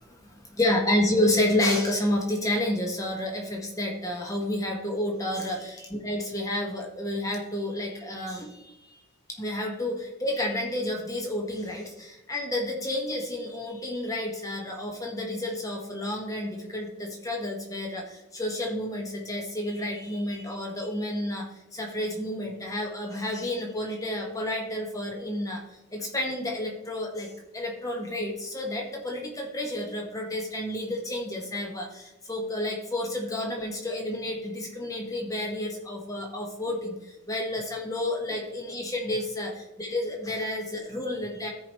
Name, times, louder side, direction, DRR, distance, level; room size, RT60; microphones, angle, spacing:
voice 1, 0.6-8.5 9.4-18.0 18.3-21.4 21.7-25.6 25.9-27.3 27.5-36.9 37.3-39.5 39.8-41.5, left 1 dB, 15° left, 0 dB, 1.4 m, -30 dB
14.0 x 5.1 x 3.1 m, 0.92 s
head